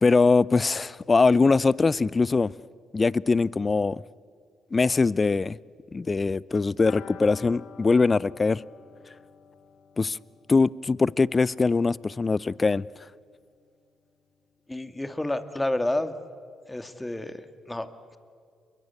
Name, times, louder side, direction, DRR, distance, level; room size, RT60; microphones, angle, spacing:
voice 1, 0.0-2.5 2.9-4.0 4.7-5.6 5.9-8.6 10.0-10.2 10.5-12.9, left 4 dB, 35° left, 0.6 m, -22 dB
sound 1, 6.8-12.4 12.7-12.8 13.1-13.2, left 6 dB, 70° left, 2.5 m, -48 dB
voice 2, 14.7-16.1 16.7-18.2, left 1 dB, 15° left, 2.3 m, -30 dB
29.0 x 23.0 x 8.5 m
hypercardioid pair, 45°, 0 cm